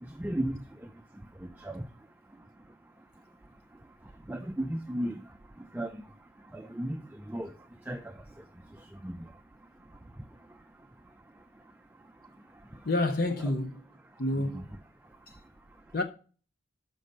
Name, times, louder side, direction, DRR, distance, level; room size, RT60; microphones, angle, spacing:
voice 1, 0.0-12.9 13.4-13.5 14.0-16.0, right 1 dB, 10° right, 0.3 m, -40 dB
voice 2, 12.8-13.8 14.2-14.7 15.3-15.4 15.9-16.0, left 2 dB, 50° left, 0.6 m, -28 dB
6.5 x 5.2 x 6.4 m
head